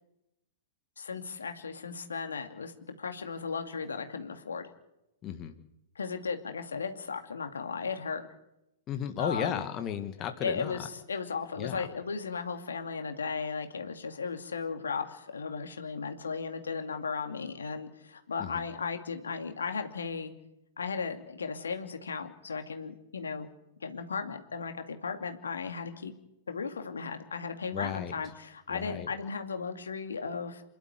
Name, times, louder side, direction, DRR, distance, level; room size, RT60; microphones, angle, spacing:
voice 1, 1.0-2.7 3.0-4.7 6.0-8.2 9.2-9.6 10.4-20.3 20.8-23.5 23.8-26.1 26.5-30.6, left 5 dB, 75° left, 6 dB, 2.4 m, -36 dB
voice 2, 5.2-5.5 8.9-10.8 11.6-11.9 18.4-18.6 27.7-28.2 28.7-29.1, left 9 dB, 30° left, 7 dB, 1.9 m, -34 dB
27.5 x 12.0 x 9.7 m, 0.91 s
figure-of-eight pair, 110°, 0 cm